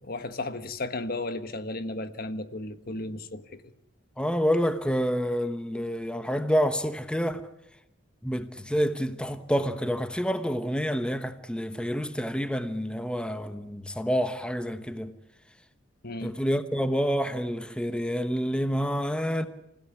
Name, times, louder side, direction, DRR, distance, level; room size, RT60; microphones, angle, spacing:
voice 1, 0.0-3.6 16.0-16.3, left 2 dB, 55° left, 1.4 m, -34 dB
voice 2, 4.2-7.4 8.2-15.1 16.2-19.5, equal, 5° left, 1.1 m, -28 dB
27.5 x 16.5 x 9.7 m
head